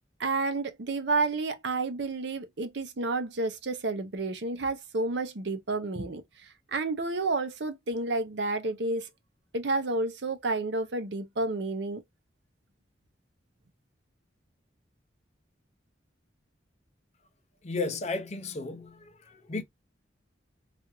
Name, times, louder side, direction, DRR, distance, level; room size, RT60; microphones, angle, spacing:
voice 1, 0.2-9.1 9.5-12.0, right 3 dB, 70° right, 0.7 m, -30 dB
voice 2, 17.6-19.6, left 3 dB, 35° left, 0.5 m, -34 dB
3.4 x 2.5 x 2.9 m
head